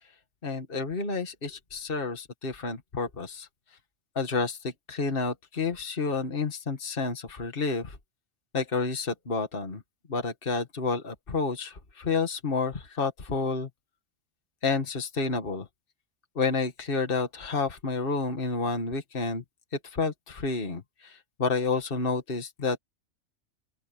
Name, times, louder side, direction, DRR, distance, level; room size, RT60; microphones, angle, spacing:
voice 1, 0.4-3.5 4.2-8.0 8.5-9.8 10.1-13.7 14.6-15.7 16.4-19.4 19.8-22.8, left 4 dB, 45° left, 2.1 m, -30 dB
open air
omnidirectional pair, 1.3 m